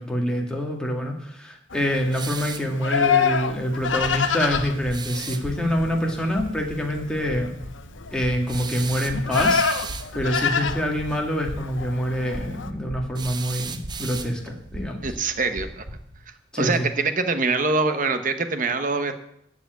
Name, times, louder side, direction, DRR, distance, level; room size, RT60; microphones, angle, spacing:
voice 1, 0.0-7.5 8.1-9.6 10.1-15.0 16.5-16.9, equal, 5° left, 0 dB, 1.8 m, -26 dB
Livestock farm animals working animals, 1.7-12.7, left 6 dB, 80° left, 0.8 m, -27 dB
sound 1, 2.1-2.7 4.9-5.5 8.5-10.1 13.1-14.6, right 6 dB, 20° right, 0.6 m, -35 dB
sound 2, 4.5-16.2, equal, 85° right, 1.6 m, -40 dB
voice 2, 15.0-15.8 16.6-19.1, right 3 dB, 45° right, 8 dB, 1.1 m, -24 dB
14.0 x 5.0 x 9.2 m, 0.75 s
head